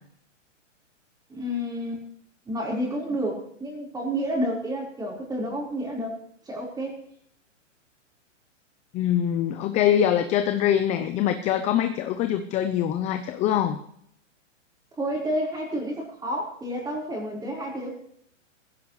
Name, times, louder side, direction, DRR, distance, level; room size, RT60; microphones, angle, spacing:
voice 1, 1.3-2.0 2.5-6.2 6.5-7.0 15.0-18.0, equal, 10° right, -1 dB, 4.6 m, -30 dB
voice 2, 8.9-13.8, left 10 dB, 20° left, 8 dB, 0.7 m, -23 dB
17.0 x 16.0 x 3.3 m, 0.68 s
hypercardioid pair, 145°, 38 cm